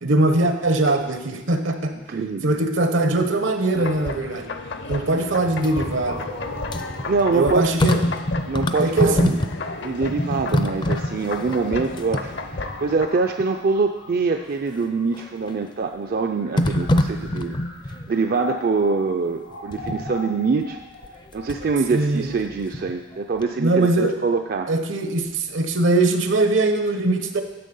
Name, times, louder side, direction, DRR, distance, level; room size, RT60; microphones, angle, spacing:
voice 1, 0.0-1.9 2.4-4.5 4.9-6.3 7.3-8.0 8.8-9.4 21.9-22.3 23.6-24.1 24.7-27.4, right 2 dB, 75° right, 7 dB, 1.0 m, -21 dB
voice 2, 2.1-2.5 7.1-7.7 8.5-9.4 9.8-17.6 18.1-20.8 21.3-24.7, right 4 dB, 50° right, 5 dB, 0.4 m, -24 dB
sound 1, 3.7-13.1, left 3 dB, 60° left, 0.7 m, -33 dB
sound 2, 5.5-9.8 10.0-12.9 13.4-13.5 15.1-15.6 16.6-18.1 19.7-20.1 21.0-21.8 22.2-23.2 23.4-23.5, left 1 dB, 25° left, 0.4 m, -25 dB
sound 3, 5.7-15.5 16.2-23.2, left 2 dB, 80° left, 2.1 m, -40 dB
10.0 x 6.9 x 5.4 m, 1.1 s
head